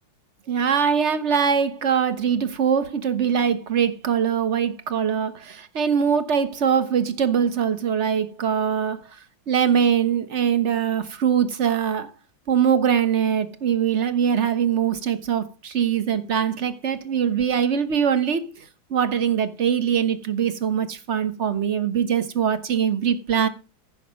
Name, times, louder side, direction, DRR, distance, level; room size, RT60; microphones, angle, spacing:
voice 1, 0.5-9.0 9.5-12.1 12.5-23.5, right 8 dB, 40° right, 1.1 m, -22 dB
14.5 x 6.6 x 5.2 m
omnidirectional pair, 2.3 m